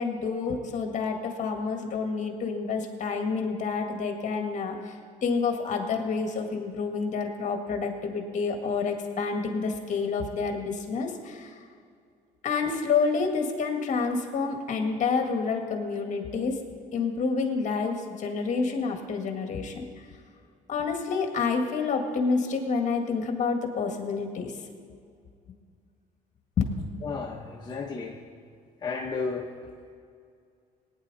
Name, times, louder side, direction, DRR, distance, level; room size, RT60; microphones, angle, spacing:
voice 1, 0.0-11.5 12.4-16.6 16.9-19.8 20.7-24.5, left 4 dB, 45° left, 3 dB, 1.9 m, -28 dB
voice 2, 27.0-28.2 28.8-29.9, left 4 dB, 25° left, -2 dB, 1.1 m, -33 dB
19.0 x 9.7 x 4.1 m, 2.3 s
cardioid pair, 110°, 17 cm